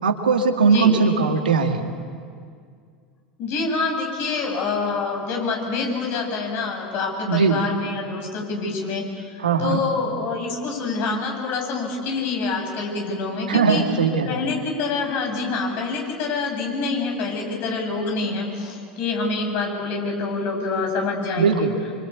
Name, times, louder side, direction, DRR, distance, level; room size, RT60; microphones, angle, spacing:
voice 1, 0.0-1.9 7.3-7.6 9.4-9.8 13.5-14.4 21.4-21.7, right 5 dB, 85° right, 4 dB, 2.2 m, -19 dB
voice 2, 3.4-13.8 14.3-21.7, left 4 dB, 55° left, 1 dB, 7.4 m, -26 dB
26.5 x 25.0 x 8.5 m, 2.2 s
hypercardioid pair, 85°, 5 cm